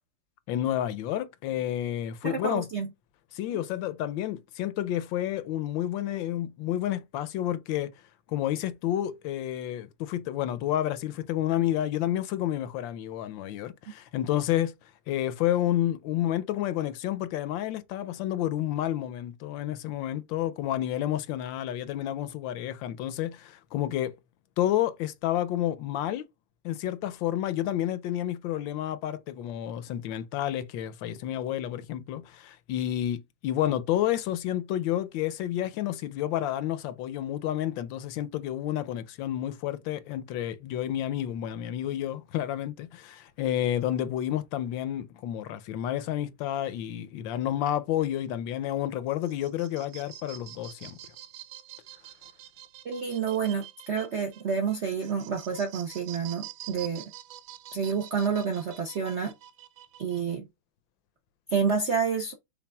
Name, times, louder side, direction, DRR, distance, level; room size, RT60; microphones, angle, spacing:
voice 1, 0.5-2.7 3.3-7.9 8.3-14.8 15.1-24.1 24.6-26.3 26.6-51.0, left 12 dB, 80° left, 1.3 m, -30 dB
voice 2, 2.2-2.9 52.8-57.0 57.7-59.3 60.0-60.4 61.5-62.3, right 6 dB, 65° right, 0.6 m, -29 dB
sound 1, 49.1-60.4, right 13 dB, 80° right, 1.4 m, -47 dB
5.9 x 3.8 x 2.3 m
omnidirectional pair, 2.2 m